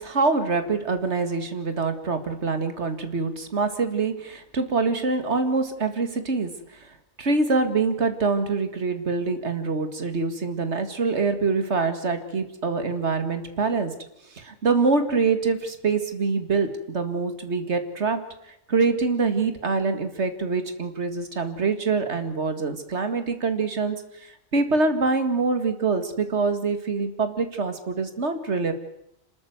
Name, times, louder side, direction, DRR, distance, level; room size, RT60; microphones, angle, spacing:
voice 1, 0.0-6.9 7.2-13.9 14.3-18.2 18.7-28.7, right 4 dB, 80° right, 9 dB, 2.3 m, -25 dB
27.0 x 13.0 x 9.4 m, 0.84 s
omnidirectional pair, 1.1 m